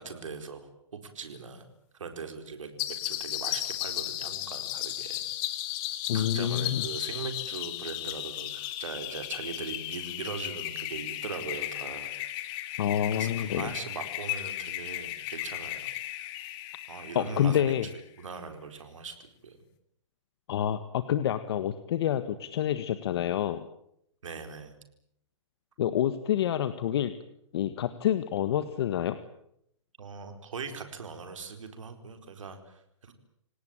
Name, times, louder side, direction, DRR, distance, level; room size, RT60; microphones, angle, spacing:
voice 1, 0.0-1.6 1.9-5.2 6.1-12.1 12.6-12.7 13.1-15.9 16.9-17.6 18.2-19.6 24.2-24.7 30.0-33.1, right 5 dB, 80° right, 7 dB, 4.5 m, -40 dB
sound 1, 2.8-18.0, left 14 dB, 30° left, 2.1 m, -35 dB
voice 2, 6.1-6.8 12.8-13.7 17.1-17.9 20.5-23.6 25.8-27.1 27.5-29.2, left 10 dB, 55° left, 11 dB, 1.6 m, -28 dB
28.0 x 18.5 x 9.0 m, 0.75 s
hypercardioid pair, 145°, 16 cm